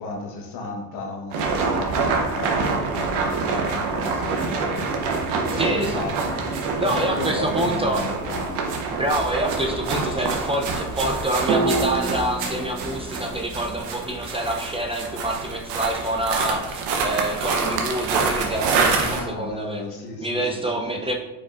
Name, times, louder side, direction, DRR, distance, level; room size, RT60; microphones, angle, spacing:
voice 1, 0.0-8.8 18.8-21.1, left 3 dB, 80° left, 0 dB, 1.1 m, -34 dB
sound 1, 1.3-19.2, right 4 dB, 90° right, 0.9 m, -26 dB
voice 2, 5.6-6.0 6.8-8.0 8.9-19.8 20.2-21.1, right 1 dB, 15° right, 1 dB, 0.4 m, -26 dB
sound 2, 8.5-9.1 11.5-15.5 15.7-15.8, right 3 dB, 50° right, 0.7 m, -30 dB
4.8 x 4.2 x 2.4 m, 1.0 s
cardioid pair, 100°, 39 cm